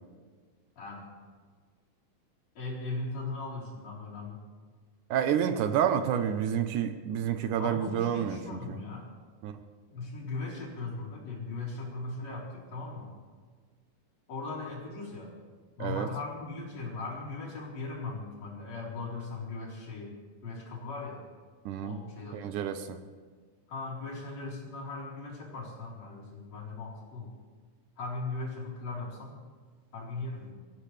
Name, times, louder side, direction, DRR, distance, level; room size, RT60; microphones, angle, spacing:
voice 1, 0.8-1.1 2.6-4.4 7.6-9.1 9.9-13.2 14.3-15.3 15.8-21.2 21.8-22.4 23.7-27.3 28.0-29.3 29.9-30.5, left 3 dB, 55° left, -6 dB, 5.3 m, -38 dB
voice 2, 5.1-8.4 8.7-8.8 9.4-9.5 15.8-16.1 21.7-22.0 22.3-23.0, right 9 dB, 75° right, 8 dB, 2.2 m, -29 dB
25.0 x 15.0 x 3.4 m, 1.5 s
omnidirectional pair, 3.7 m